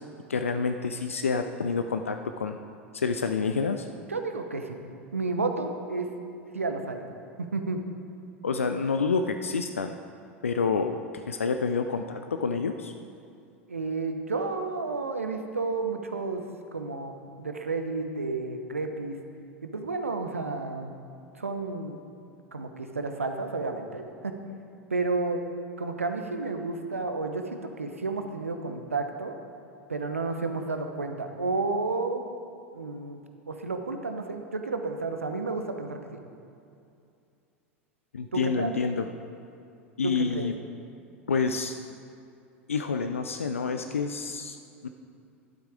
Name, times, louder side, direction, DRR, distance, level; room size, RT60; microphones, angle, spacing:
voice 1, 0.3-2.6 2.9-3.9 8.4-9.9 10.4-12.9 38.1-39.1 40.0-40.5 41.3-41.7 42.7-44.6 44.8-44.9, left 5 dB, 80° left, 7 dB, 0.4 m, -28 dB
voice 2, 4.1-4.8 5.1-6.1 6.5-7.1 7.4-7.8 13.7-16.4 16.7-19.2 19.6-20.9 21.4-22.0 22.5-24.4 24.9-25.4 25.8-29.3 29.9-32.2 32.7-33.2 33.5-36.2 38.3-38.8 40.0-40.5, right 3 dB, 85° right, 6 dB, 0.9 m, -31 dB
12.0 x 8.0 x 4.9 m, 2.5 s
figure-of-eight pair, 85°, 7 cm